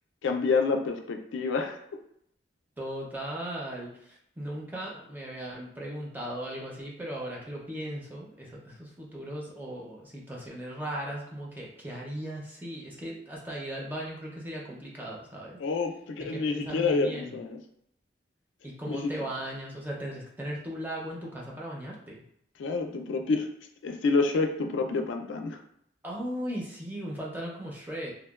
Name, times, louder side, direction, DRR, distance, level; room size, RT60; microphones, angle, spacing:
voice 1, 0.2-1.8 15.6-17.6 18.9-19.1 22.6-23.5 23.8-25.6, left 4 dB, 85° left, 4 dB, 0.3 m, -28 dB
voice 2, 2.8-15.6 16.2-17.4 18.6-22.2 26.0-28.1, right 1 dB, 10° right, -3 dB, 0.4 m, -37 dB
2.8 x 2.1 x 2.2 m, 0.72 s
head